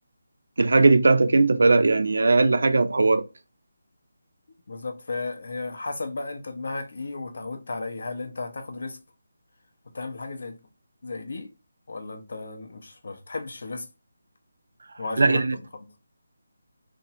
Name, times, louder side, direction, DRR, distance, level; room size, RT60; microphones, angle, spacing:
voice 1, 0.6-3.2 15.2-15.6, right 3 dB, 70° right, 0.4 m, -19 dB
voice 2, 4.7-9.0 9.9-10.6 11.0-11.5 11.9-13.9 15.0-15.6, left 3 dB, 60° left, 0.7 m, -34 dB
3.4 x 2.0 x 2.7 m
figure-of-eight pair, 175°, 0 cm